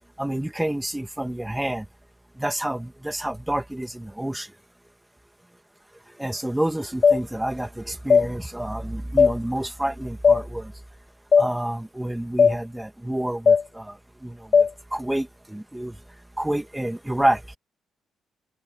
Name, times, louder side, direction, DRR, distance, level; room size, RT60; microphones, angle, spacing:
voice 1, 0.2-1.8 2.4-4.5 6.2-10.7 11.4-13.9 14.2-14.4 14.9-15.9 16.4-17.4, right 1 dB, 5° right, 2.0 m, -28 dB
sound 1, 7.0-7.2 8.1-8.3 9.2-9.3 10.2-10.4 11.3-11.5 12.4-12.5 13.5-13.6 14.5-14.7, left 6 dB, 45° left, 1.0 m, -15 dB
open air
cardioid pair, 90°, 0 cm